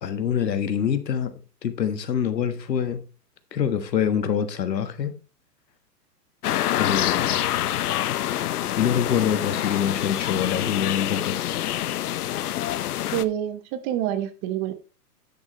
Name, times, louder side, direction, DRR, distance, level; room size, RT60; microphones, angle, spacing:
voice 1, 0.0-1.3 1.6-3.0 3.5-5.2 6.8-7.5 8.8-11.4, left 8 dB, 85° left, 1.6 m, -25 dB
sound 1, 6.4-13.2, left 12 dB, 65° left, 0.8 m, -26 dB
voice 2, 13.1-14.7, right 12 dB, 25° right, 0.9 m, -27 dB
9.9 x 8.2 x 3.2 m
hypercardioid pair, 140°, 49 cm